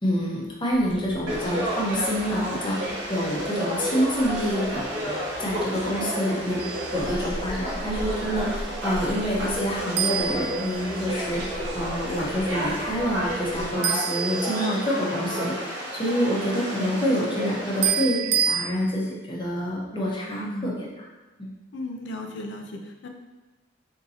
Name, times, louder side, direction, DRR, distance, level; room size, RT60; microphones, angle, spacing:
voice 1, 0.0-6.6 6.9-15.6 15.9-20.9 21.4-21.5, equal, 25° left, -3 dB, 0.8 m, -27 dB
sound 1, 0.7-13.8, equal, ahead, 1.2 m, -40 dB
Conversation / Crowd, 1.3-17.9, equal, 90° right, 1.0 m, -31 dB
sound 2, 6.6-7.0 10.0-11.3 13.8-15.1 17.8-18.6, right 8 dB, 60° right, 0.5 m, -27 dB
voice 2, 20.4-20.8 21.7-23.1, left 1 dB, 65° left, 3 dB, 0.5 m, -35 dB
4.0 x 3.6 x 2.8 m, 1.1 s
head